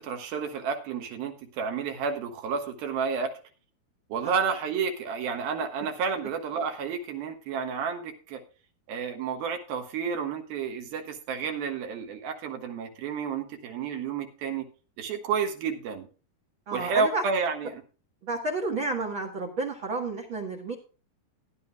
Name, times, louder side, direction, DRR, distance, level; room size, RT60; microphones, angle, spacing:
voice 1, 0.0-3.4 4.1-8.4 8.9-14.6 15.0-16.1 16.7-17.8, right 5 dB, 75° right, 5 dB, 3.1 m, -31 dB
voice 2, 16.7-17.2 18.2-20.7, right 3 dB, 55° right, 4 dB, 1.5 m, -31 dB
16.5 x 10.5 x 2.3 m, 0.35 s
omnidirectional pair, 4.5 m